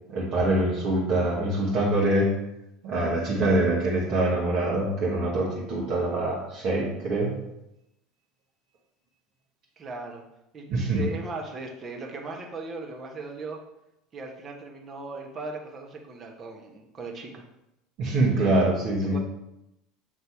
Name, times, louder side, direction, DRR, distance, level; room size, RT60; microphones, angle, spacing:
voice 1, 0.1-2.4 2.8-7.3 10.7-11.0 18.0-19.2, right 1 dB, 50° right, -5 dB, 1.5 m, -24 dB
voice 2, 9.8-10.2 10.5-13.6 14.1-17.5 19.0-19.2, right 3 dB, 35° right, 1 dB, 1.3 m, -38 dB
6.8 x 3.3 x 4.5 m, 0.87 s
figure-of-eight pair, 70°, 0 cm